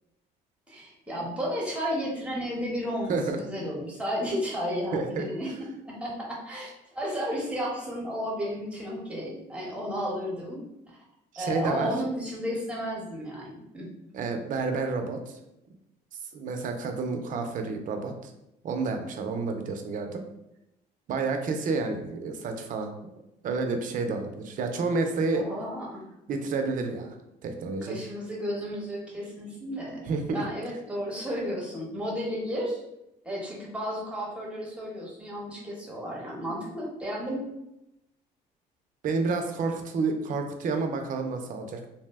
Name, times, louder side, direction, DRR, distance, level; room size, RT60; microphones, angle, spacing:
voice 1, 0.7-11.0 11.4-13.9 25.2-26.0 27.8-32.8 33.2-37.4, equal, 5° right, -4 dB, 0.9 m, -33 dB
voice 2, 4.9-5.3 11.3-11.9 14.1-15.4 16.3-18.3 18.6-20.2 21.1-22.9 23.4-25.5 26.3-27.2 27.4-28.0 30.1-30.4 39.0-41.9, right 4 dB, 50° right, 5 dB, 0.5 m, -29 dB
2.6 x 2.0 x 3.4 m, 0.88 s
cardioid pair, 110°, 17 cm